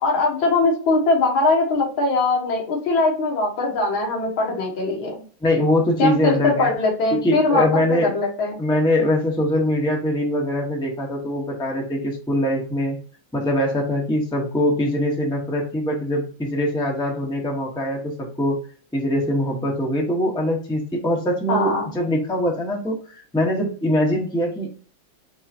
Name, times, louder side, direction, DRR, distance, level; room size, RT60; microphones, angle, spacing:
voice 1, 0.0-5.2 6.0-7.7 7.9-8.6 21.5-21.9, left 3 dB, 75° left, 0 dB, 2.1 m, -21 dB
voice 2, 5.4-6.7 7.2-8.1 8.6-13.0 13.3-18.6 18.9-24.7, left 1 dB, 5° left, -1 dB, 0.7 m, -22 dB
4.7 x 3.6 x 2.8 m, 0.42 s
omnidirectional pair, 2.2 m